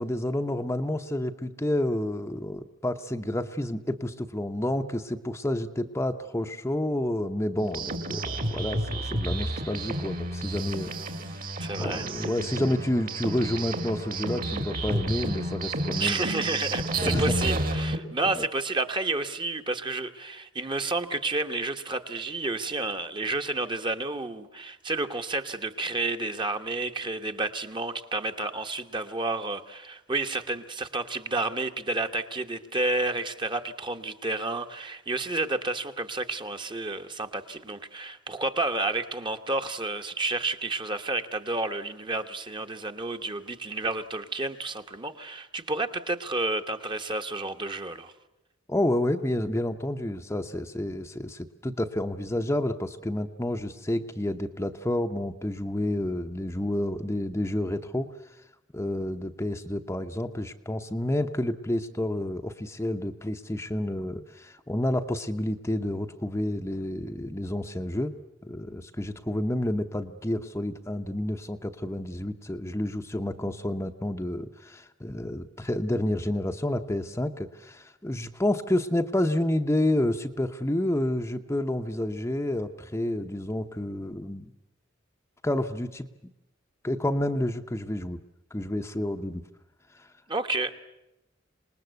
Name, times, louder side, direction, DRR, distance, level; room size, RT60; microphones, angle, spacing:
voice 1, 0.0-10.9 11.8-16.3 17.0-17.4 18.2-18.4 48.7-58.1 58.7-68.1 68.4-84.5 85.4-86.0 86.8-88.2 88.5-89.4 89.9-90.1, left 1 dB, 15° left, 5 dB, 0.8 m, -29 dB
sound 1, 7.6-18.0, right 1 dB, 45° right, 2.1 m, -31 dB
voice 2, 11.6-12.0 16.0-48.1 90.3-90.8, right 2 dB, 25° right, 7 dB, 1.2 m, -30 dB
26.5 x 20.0 x 8.1 m, 0.93 s
head